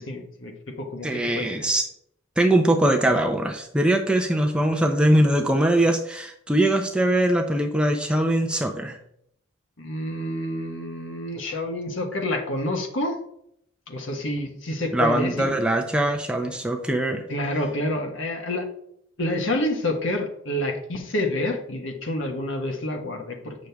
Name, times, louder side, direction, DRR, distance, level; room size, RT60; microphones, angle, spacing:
voice 1, 0.0-1.6 9.8-13.2 13.9-15.5 17.3-18.7 19.2-23.6, left 1 dB, 60° left, 3 dB, 1.4 m, -28 dB
voice 2, 1.0-1.9 2.4-9.0 14.9-17.2, right 1 dB, 5° right, 2 dB, 0.6 m, -22 dB
8.2 x 6.4 x 3.5 m, 0.72 s
head